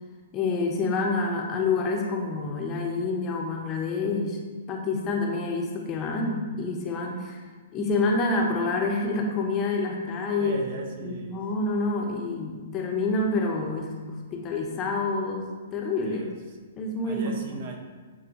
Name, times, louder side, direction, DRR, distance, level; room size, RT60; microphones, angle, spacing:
voice 1, 0.3-4.4 4.7-7.4 7.7-10.6 10.9-16.3 16.8-17.4, left 3 dB, 30° left, 0 dB, 0.9 m, -27 dB
voice 2, 10.3-11.4 15.9-16.3 17.0-17.8, right 4 dB, 55° right, 2 dB, 1.2 m, -38 dB
7.8 x 4.3 x 3.0 m, 1.4 s
hypercardioid pair, 120°, 0 cm